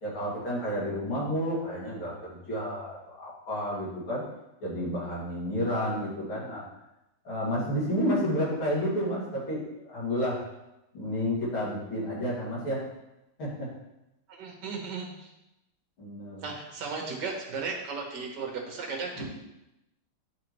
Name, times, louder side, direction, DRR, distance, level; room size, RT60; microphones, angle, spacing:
voice 1, 0.0-4.2 4.6-6.6 7.2-10.4 10.9-12.8 13.4-13.7 16.0-16.4 19.1-19.2, equal, 65° left, -7 dB, 3.0 m, -31 dB
voice 2, 14.3-15.3 16.4-19.2, right 4 dB, 55° right, 1 dB, 1.6 m, -35 dB
9.6 x 4.2 x 3.0 m, 0.90 s
omnidirectional pair, 2.4 m